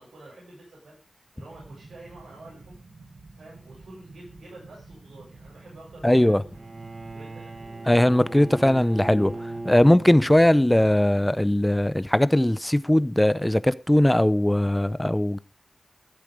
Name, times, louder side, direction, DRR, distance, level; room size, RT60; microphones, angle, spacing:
voice 1, 0.0-2.8 3.3-6.8 7.1-7.5, right 2 dB, 85° right, 7.4 m, -48 dB
sound 1, 1.4-11.0, right 3 dB, 65° right, 5.6 m, -49 dB
voice 2, 6.0-6.4 7.9-9.3 9.6-15.4, left 1 dB, 10° left, 0.7 m, -19 dB
Bowed string instrument, 6.5-10.6, right 2 dB, 50° right, 1.3 m, -38 dB
15.0 x 8.3 x 5.0 m
wide cardioid pair, 70°, 0 cm